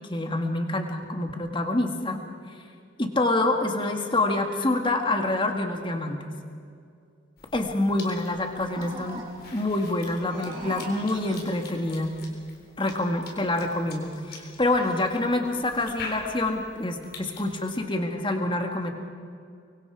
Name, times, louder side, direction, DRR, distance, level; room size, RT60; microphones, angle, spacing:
voice 1, 0.1-2.2 3.0-6.2 7.5-9.2 9.5-12.1 12.8-18.9, left 2 dB, 25° left, 4 dB, 1.9 m, -26 dB
Cough / Chewing mastication, 7.4-17.8, left 3 dB, 50° left, 3.9 m, -45 dB
sound 1, 8.3-9.6 10.1-11.8, right 2 dB, 25° right, 6.7 m, -41 dB
25.0 x 23.5 x 4.9 m, 2.4 s
head